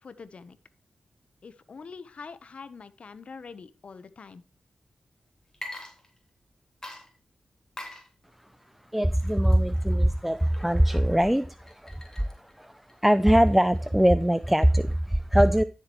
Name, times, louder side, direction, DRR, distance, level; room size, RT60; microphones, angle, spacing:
voice 1, 0.0-0.6 1.4-4.4, left 5 dB, 65° left, 14 dB, 1.0 m, -44 dB
Water / Liquid, 5.5-6.5 6.8-15.0, left 1 dB, 25° left, 3.5 m, -46 dB
voice 2, 8.9-15.6, equal, 5° right, 14 dB, 0.5 m, -22 dB
13.0 x 7.4 x 3.1 m, 0.34 s
cardioid pair, 50°, 2 cm